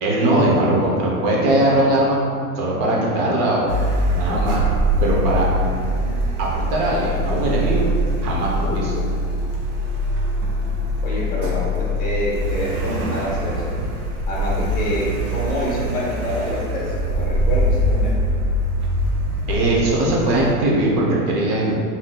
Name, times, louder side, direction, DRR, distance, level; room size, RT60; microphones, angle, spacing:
voice 1, 0.0-2.2 2.6-3.7 4.1-4.6 5.0-5.5 6.4-7.9 8.2-9.0 19.5-21.7, right 1 dB, 40° right, -3 dB, 0.7 m, -20 dB
Car, 3.7-20.5, equal, 80° right, 0.8 m, -23 dB
voice 2, 11.0-13.7 14.3-18.1, equal, 20° left, -6 dB, 0.8 m, -26 dB
3.5 x 2.7 x 2.2 m, 2.2 s
supercardioid pair, 140°, 44 cm